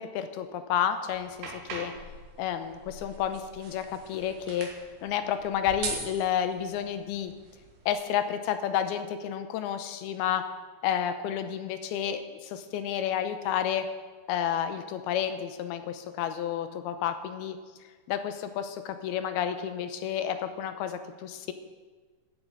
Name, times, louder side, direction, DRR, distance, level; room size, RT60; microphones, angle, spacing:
voice 1, 0.0-1.9 2.4-4.7 5.0-7.3 7.9-10.4 10.8-13.9 14.3-17.6 18.1-21.5, left 9 dB, 80° left, 9 dB, 2.8 m, -30 dB
sound 1, 1.1-7.9, right 5 dB, 85° right, 3.6 m, -42 dB
13.5 x 7.4 x 8.7 m, 1.4 s
omnidirectional pair, 4.5 m